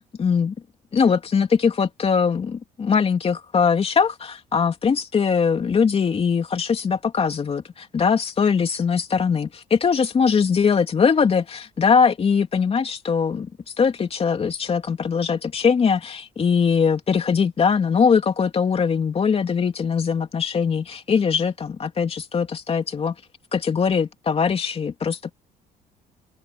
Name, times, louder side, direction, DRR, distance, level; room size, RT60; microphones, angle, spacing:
voice 1, 0.2-0.5 0.9-13.5 13.8-23.1 23.5-25.3, left 6 dB, 35° left, 3.1 m, -21 dB
open air
cardioid pair, 110°, 17 cm